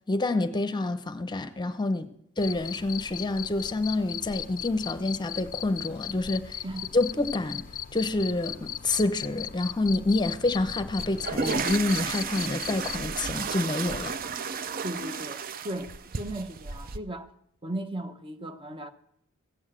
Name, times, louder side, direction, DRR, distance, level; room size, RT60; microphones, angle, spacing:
voice 1, 0.1-2.1 2.4-6.6 6.9-7.6 7.9-14.1, left 2 dB, 20° left, 0.8 m, -28 dB
Cricket, 2.4-13.0, left 10 dB, 40° left, 0.5 m, -38 dB
sound 1, 11.0-17.0, right 5 dB, 40° right, 0.6 m, -33 dB
voice 2, 14.8-17.3 17.6-18.9, right 1 dB, 25° right, 0.9 m, -36 dB
16.0 x 7.2 x 7.5 m
head